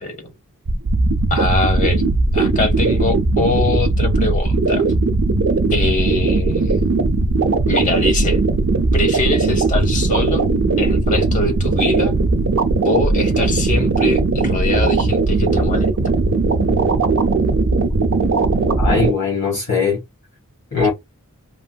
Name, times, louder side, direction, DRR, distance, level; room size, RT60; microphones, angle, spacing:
voice 1, 0.0-0.3 1.3-2.0 2.3-4.9 5.7-6.9 7.7-8.4 8.9-10.5 10.8-12.1 12.8-15.9, left 2 dB, 35° left, 0.8 m, -23 dB
sound 1, 0.7-19.1, right 3 dB, 60° right, 0.5 m, -18 dB
voice 2, 18.8-20.0 20.7-20.9, left 5 dB, 55° left, 1.2 m, -19 dB
3.0 x 2.6 x 2.2 m
head